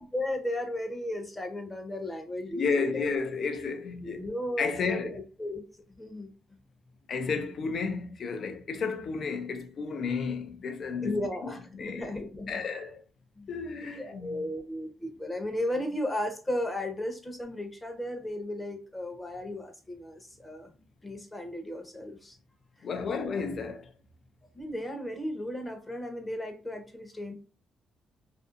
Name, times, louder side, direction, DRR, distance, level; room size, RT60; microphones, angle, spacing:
voice 1, 0.0-3.1 4.0-6.3 11.0-12.7 13.4-20.7 21.0-22.4 22.8-22.9 24.5-27.3, left 1 dB, 15° left, 0.8 m, -35 dB
voice 2, 2.5-4.3 4.6-5.1 7.1-11.2 11.8-12.1 12.5-13.0 13.5-14.4 22.8-23.9, left 5 dB, 55° left, 0.5 m, -32 dB
2.5 x 2.3 x 2.5 m
cardioid pair, 90°, 0 cm